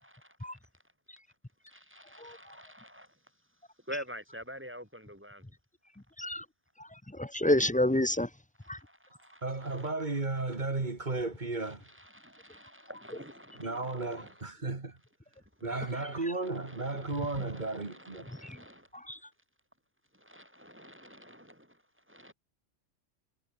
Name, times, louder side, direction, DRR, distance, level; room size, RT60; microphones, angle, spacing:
voice 1, 0.0-0.7 1.7-3.4 3.8-5.6 8.6-9.9 11.6-14.5 15.3-18.9 20.1-22.3, equal, 10° right, 5.8 m, -49 dB
voice 2, 7.1-8.3 8.7-8.8 18.4-18.6 19.1-19.2, left 1 dB, 10° left, 0.7 m, -28 dB
voice 3, 9.4-11.9 13.6-15.0 15.6-18.3, right 3 dB, 40° right, 2.1 m, -34 dB
omnidirectional pair, 1.3 m